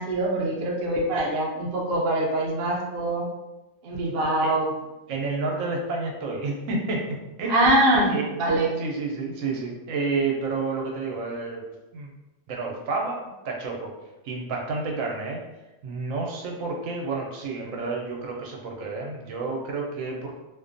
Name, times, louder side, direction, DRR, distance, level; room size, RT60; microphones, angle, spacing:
voice 1, 0.0-3.3 3.8-4.7 7.5-8.7, right 1 dB, 60° right, -1 dB, 0.7 m, -23 dB
voice 2, 5.1-7.6 8.1-8.4 8.8-11.6 11.9-12.1 12.5-13.9 14.2-15.4 15.8-20.4, right 3 dB, 85° right, 0 dB, 1.0 m, -30 dB
2.5 x 2.2 x 2.5 m, 1.0 s
omnidirectional pair, 1.3 m